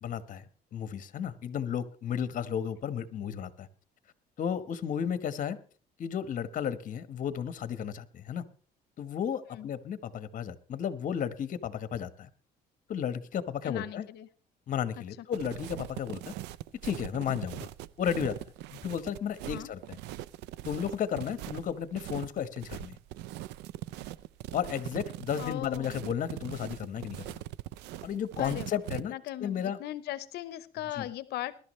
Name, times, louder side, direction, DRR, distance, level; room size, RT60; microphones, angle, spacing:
voice 1, 0.0-3.7 4.4-5.6 6.0-8.4 9.0-12.3 12.9-14.1 14.7-16.3 16.8-17.7 18.0-18.4 18.7-20.0 20.6-23.0 24.5-27.4 28.0-29.1 29.4-29.8 31.0-31.1, left 8 dB, 50° left, 13 dB, 1.2 m, -33 dB
voice 2, 13.6-14.3 15.0-15.1 19.5-19.7 25.4-26.1 28.4-31.5, left 14 dB, 75° left, 16 dB, 0.8 m, -39 dB
sound 1, 15.3-29.0, right 14 dB, 90° right, 0.5 m, -41 dB
21.0 x 12.0 x 3.2 m, 0.41 s
cardioid pair, 110°, 17 cm